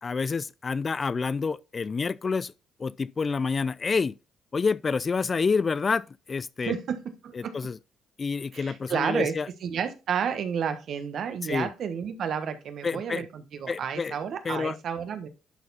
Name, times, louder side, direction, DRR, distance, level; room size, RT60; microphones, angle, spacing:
voice 1, 0.0-2.5 2.8-4.2 4.5-6.8 7.3-7.8 8.2-9.5 11.4-11.7 12.8-13.3 13.7-14.2 14.4-14.8, left 5 dB, 35° left, 0.3 m, -28 dB
voice 2, 6.6-7.5 8.5-9.3 9.6-15.3, right 7 dB, 65° right, 1.4 m, -31 dB
11.0 x 4.3 x 4.2 m
cardioid pair, 90°, 0 cm